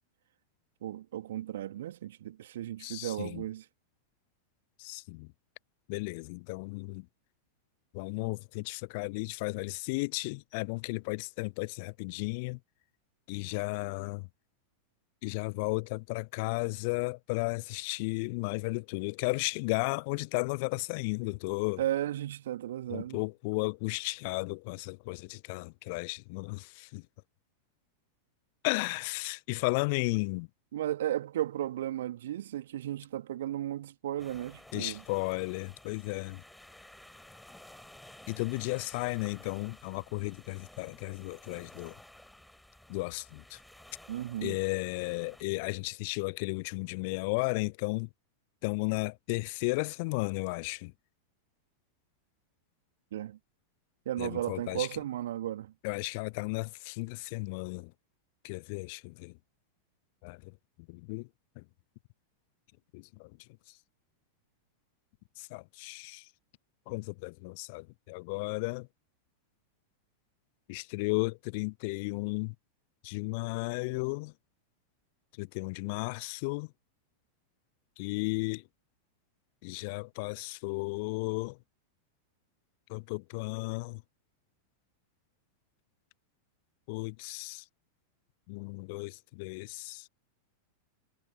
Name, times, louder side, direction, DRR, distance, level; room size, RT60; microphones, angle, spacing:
voice 1, 0.8-3.7 21.8-23.2 30.7-35.0 44.1-44.6 53.1-53.4 54.0-55.7, right 12 dB, 60° right, 2.7 m, -35 dB
voice 2, 2.8-3.4 4.8-5.3 5.9-7.1 7.9-12.6 13.3-14.3 15.2-21.8 22.9-27.0 28.6-30.5 34.7-36.4 38.3-42.0 42.9-43.6 44.4-48.1 48.6-50.9 54.2-54.9 55.8-57.9 58.4-59.3 60.2-60.5 60.9-61.3 61.6-61.7 62.9-63.3 65.4-66.3 66.9-68.9 70.7-72.5 73.0-74.3 75.4-76.7 78.0-78.6 79.6-81.6 82.9-84.0 86.9-87.6 88.5-90.1, left 29 dB, 45° left, 1.0 m, -34 dB
sound 1, 34.2-45.4, left 1 dB, 5° left, 4.2 m, -54 dB
figure-of-eight pair, 90°, 0 cm